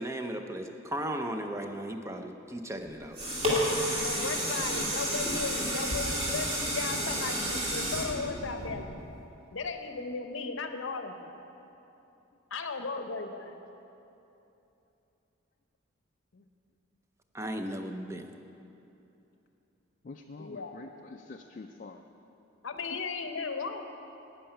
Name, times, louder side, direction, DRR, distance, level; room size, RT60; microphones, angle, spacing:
voice 1, 0.0-3.2 3.9-4.0 17.3-18.2, right 1 dB, 15° right, 6 dB, 0.6 m, -36 dB
sound 1, 2.8-9.2 9.7-9.8, equal, 30° right, 2.4 m, -31 dB
voice 2, 4.0-9.0 9.5-11.3 12.5-13.6 16.3-16.4 20.4-20.7 22.6-23.8, left 4 dB, 70° left, 7 dB, 0.7 m, -36 dB
voice 3, 20.0-22.0 22.9-23.0, left 3 dB, 40° left, 3 dB, 0.4 m, -46 dB
11.5 x 5.6 x 8.7 m, 2.9 s
head